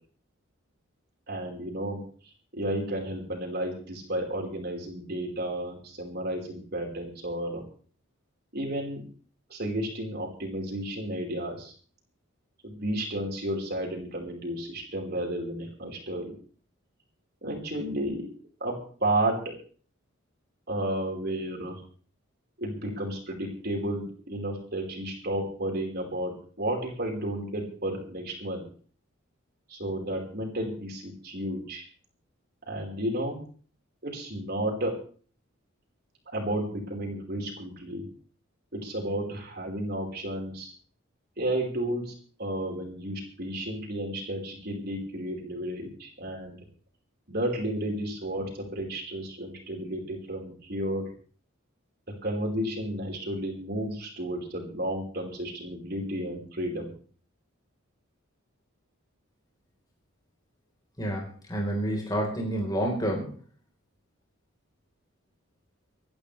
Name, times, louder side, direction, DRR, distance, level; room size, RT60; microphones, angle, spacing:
voice 1, 1.3-7.6 8.5-9.0 9.5-11.7 12.6-16.4 17.4-18.3 18.6-19.5 20.7-21.8 22.6-28.7 29.7-31.8 32.7-33.4 34.0-34.9 36.3-38.0 38.7-40.7 41.4-42.1 42.4-46.6 47.3-51.1 52.2-56.9, right 1 dB, 50° right, 0 dB, 4.9 m, -32 dB
voice 2, 61.0-63.4, right 1 dB, 20° left, -1 dB, 4.4 m, -29 dB
26.5 x 11.5 x 3.4 m, 0.43 s
head